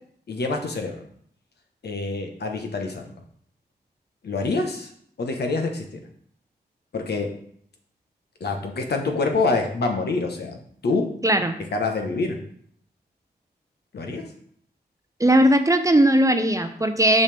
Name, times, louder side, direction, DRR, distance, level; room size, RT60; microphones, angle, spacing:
voice 1, 0.3-1.0 1.8-3.1 4.2-4.9 5.2-5.8 6.9-7.3 8.4-10.6 10.8-11.1 11.7-12.4 13.9-14.2, left 3 dB, 70° left, 3 dB, 1.2 m, -26 dB
voice 2, 11.2-11.6 15.2-17.2, right 1 dB, 20° right, 7 dB, 0.7 m, -18 dB
6.2 x 5.6 x 3.5 m, 0.64 s
cardioid pair, 60°, 18 cm